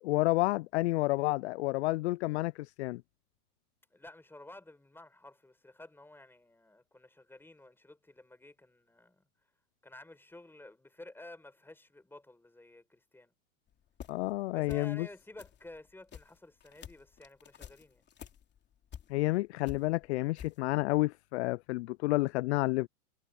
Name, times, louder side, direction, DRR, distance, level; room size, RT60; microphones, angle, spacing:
voice 1, 0.0-3.0 14.1-15.1 19.1-22.9, left 21 dB, 50° left, 0.5 m, -30 dB
voice 2, 3.9-9.3 9.8-13.3 14.5-18.1, left 2 dB, 5° left, 4.6 m, -52 dB
sound 1, 13.7-14.4 14.6-15.1 15.3-19.4 19.6-20.6, left 9 dB, 25° left, 3.1 m, -49 dB
hypercardioid pair, 115°, 45 cm